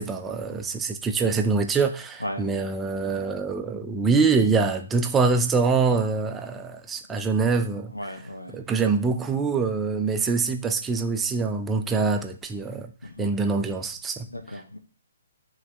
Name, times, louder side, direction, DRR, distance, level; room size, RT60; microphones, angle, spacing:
voice 1, 0.0-7.9 8.5-12.9 13.2-14.3, right 4 dB, 10° right, 0.5 m, -24 dB
voice 2, 7.9-8.6 13.0-13.3 14.3-14.8, left 1 dB, 85° left, 1.0 m, -36 dB
9.2 x 3.2 x 3.2 m
figure-of-eight pair, 130°, 0 cm